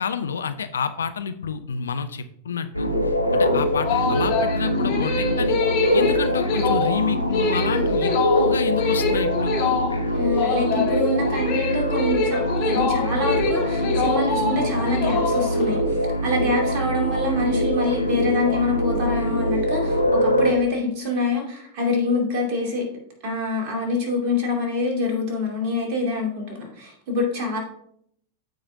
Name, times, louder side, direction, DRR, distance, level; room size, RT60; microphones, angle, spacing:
voice 1, 0.0-2.9 3.3-5.6 5.9-9.5, left 6 dB, 70° left, 10 dB, 0.5 m, -28 dB
sound 1, 2.7-20.5, equal, 90° right, 0.8 m, -23 dB
sound 2, 3.7-15.7, left 5 dB, 45° left, 3.1 m, -26 dB
voice 2, 10.1-22.8 23.2-27.6, left 2 dB, 40° right, 0 dB, 2.5 m, -25 dB
14.0 x 4.9 x 2.7 m, 0.69 s
figure-of-eight pair, 90°, 0 cm